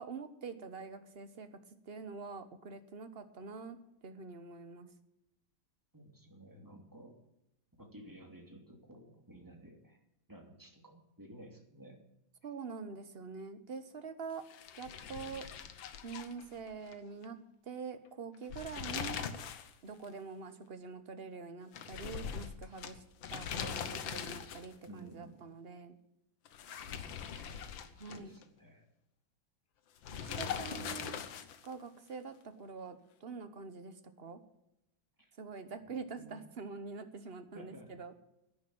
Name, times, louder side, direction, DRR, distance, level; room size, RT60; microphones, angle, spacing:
voice 1, 0.0-1.5 1.8-4.9 12.4-14.5 14.8-15.5 16.0-19.3 19.8-23.0 23.3-25.9 28.0-28.3 30.1-31.2 31.6-34.4 35.4-38.1, right 5 dB, 40° right, 10 dB, 1.0 m, -45 dB
voice 2, 5.9-7.2 7.8-10.0 10.3-12.0 24.9-25.4 26.9-27.8 28.1-28.9 35.2-35.3 35.9-36.4 37.5-37.9, right 1 dB, 10° right, 2 dB, 2.5 m, -54 dB
sound 1, 14.5-16.9 17.2-17.3 18.3-19.7 20.0-20.1 21.7-24.8 26.4-28.4 30.0-31.7, left 8 dB, 70° left, 1.8 m, -41 dB
11.0 x 10.5 x 8.7 m, 0.86 s
omnidirectional pair, 2.2 m